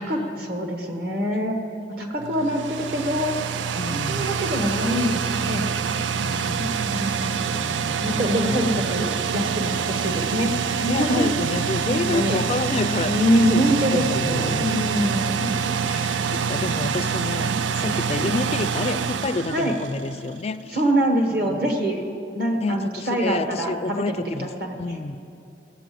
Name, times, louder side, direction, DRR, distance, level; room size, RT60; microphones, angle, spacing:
voice 1, 0.0-1.6 2.0-3.4 3.9-5.7 6.6-7.4 8.0-10.5 10.8-11.3 11.8-12.4 13.0-15.5 19.5-19.7 20.7-22.0 22.3-24.8, equal, 55° right, 3 dB, 1.3 m, -24 dB
sound 1, 2.2-20.3, right 6 dB, 85° right, 0.4 m, -26 dB
voice 2, 3.8-4.4 6.2-9.0 10.6-14.7 15.0-20.8 21.5-21.6 22.6-24.5 24.8-25.2, left 3 dB, 35° left, 11 dB, 0.3 m, -30 dB
14.0 x 8.3 x 7.6 m, 2.7 s
head